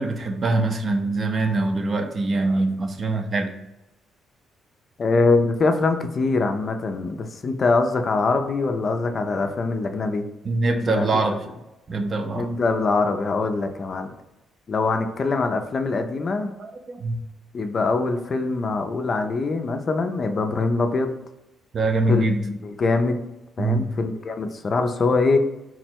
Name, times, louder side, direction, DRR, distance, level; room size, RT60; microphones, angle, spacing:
voice 1, 0.0-3.5 10.4-11.3 11.9-12.5 16.6-17.2 21.7-22.4 23.6-23.9, right 2 dB, 45° right, 6 dB, 0.5 m, -23 dB
voice 2, 5.0-10.3 10.9-11.1 12.3-14.1 14.7-16.5 17.5-21.1 22.1-23.2 23.6-25.4, left 3 dB, 45° left, 6 dB, 0.4 m, -23 dB
3.7 x 2.1 x 4.4 m, 0.94 s
cardioid pair, 90°, 0 cm